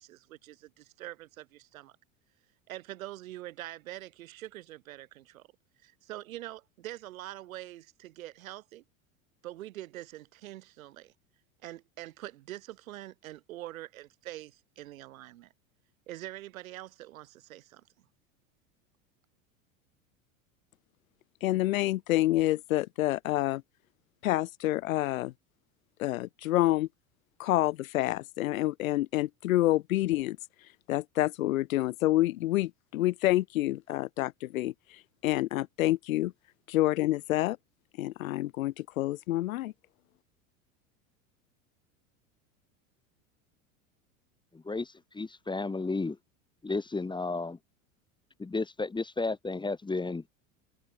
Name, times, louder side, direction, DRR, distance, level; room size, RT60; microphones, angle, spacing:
voice 1, 0.0-2.0 2.7-5.4 5.8-8.8 9.4-11.1 11.6-15.5 16.1-17.9, right 15 dB, 80° right, 5.5 m, -44 dB
voice 2, 21.4-23.6 24.2-25.3 26.0-26.9 27.4-30.4 30.9-34.7 35.2-36.3 36.7-37.6 38.0-39.7, left 16 dB, 80° left, 1.1 m, -28 dB
voice 3, 44.6-46.2 46.6-47.6 48.4-50.2, left 3 dB, 10° left, 1.5 m, -33 dB
hypercardioid pair, 95°, 41 cm